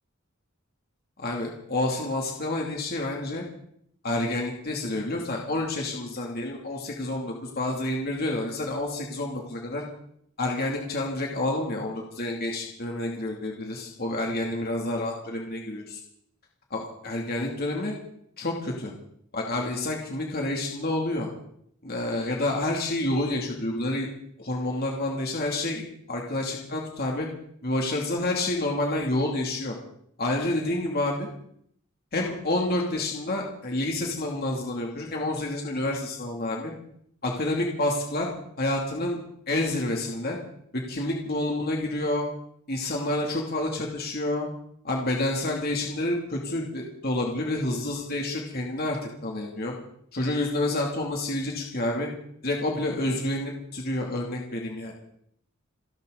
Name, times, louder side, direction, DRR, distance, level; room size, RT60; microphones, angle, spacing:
voice 1, 1.2-3.4 4.0-9.8 10.4-16.0 16.7-17.9 18.4-18.9 19.3-21.3 21.8-24.1 24.4-27.3 27.6-29.8 30.2-31.3 32.1-36.7 37.2-39.2 39.5-40.4 40.7-42.2 42.7-44.5 44.8-49.0 49.2-49.7 50.1-52.1 52.4-54.9, left 1 dB, 45° left, -1 dB, 2.7 m, -29 dB
29.0 x 12.0 x 4.0 m, 0.69 s
head